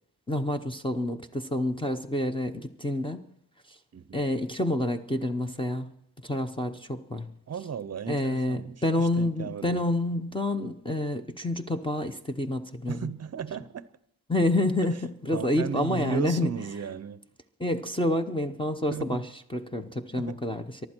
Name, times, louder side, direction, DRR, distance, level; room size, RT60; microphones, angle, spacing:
voice 1, 0.3-3.2 4.1-5.9 6.2-7.3 8.1-13.1 14.3-16.6 17.6-19.2 19.5-20.9, left 1 dB, 10° left, 0.7 m, -28 dB
voice 2, 3.9-4.3 7.5-9.8 12.9-13.9 15.3-17.2 18.9-19.2 20.2-20.4, right 6 dB, 40° right, 0.6 m, -35 dB
23.5 x 11.5 x 4.5 m
wide cardioid pair, 175°, 41 cm